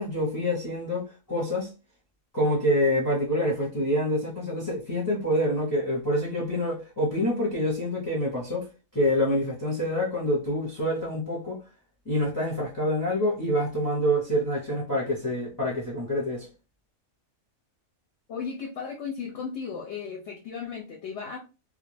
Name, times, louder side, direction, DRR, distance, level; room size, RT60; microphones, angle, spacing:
voice 1, 0.0-1.7 2.3-8.7 8.9-11.6 12.0-16.5, equal, 20° left, 0.6 m, -26 dB
voice 2, 18.3-21.4, left 6 dB, 65° left, 0.8 m, -35 dB
2.4 x 2.1 x 3.0 m
omnidirectional pair, 1.4 m